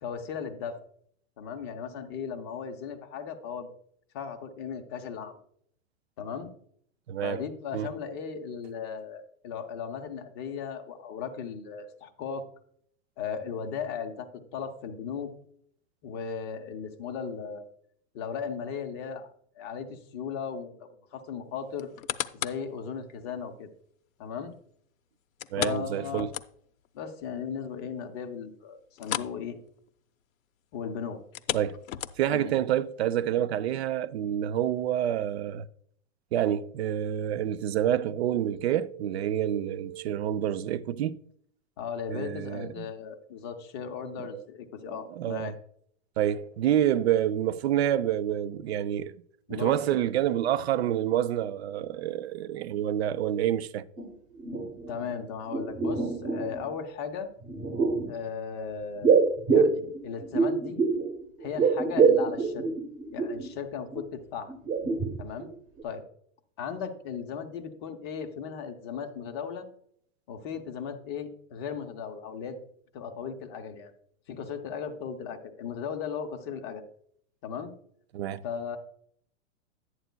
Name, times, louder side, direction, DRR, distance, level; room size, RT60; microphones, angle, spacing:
voice 1, 0.0-0.8 1.4-3.7 4.1-5.4 6.2-6.5 7.2-12.5 13.2-15.3 16.0-17.7 18.1-19.3 19.6-21.9 22.3-23.7 24.2-24.5 25.6-26.4 26.9-29.5 30.7-31.2 32.3-32.5 41.8-45.5 49.5-50.0 54.9-57.3 58.1-59.2 59.5-60.8 61.4-62.7 63.1-64.5 65.2-65.5 65.8-66.0 66.6-69.7 70.3-72.6 72.9-73.9 74.3-76.8 77.4-77.7 78.4-78.8, left 6 dB, 20° left, 0.5 m, -36 dB
voice 2, 7.1-7.4 7.7-7.9 8.2-8.6 25.5-26.3 31.5-31.8 32.2-35.6 36.3-41.2 42.1-42.9 44.3-44.4 44.9-45.5 46.2-49.1 49.5-53.8 78.1-78.4, right 11 dB, 55° right, 0.5 m, -28 dB
sound 1, 21.8-22.7 23.2-23.3 25.4-26.9 27.2-27.3 27.7-27.8 29.0-29.4 29.7-29.9 31.2-32.5 33.1-33.2, left 11 dB, 85° left, 0.7 m, -35 dB
sound 2, 54.0-54.1 54.3-55.2 55.5-56.6 57.4-58.1 59.0-61.1 61.4-63.5 63.9-64.0 64.5-65.5 65.8-65.9, right 5 dB, 20° right, 1.0 m, -25 dB
11.0 x 9.1 x 2.2 m
hypercardioid pair, 160°, 39 cm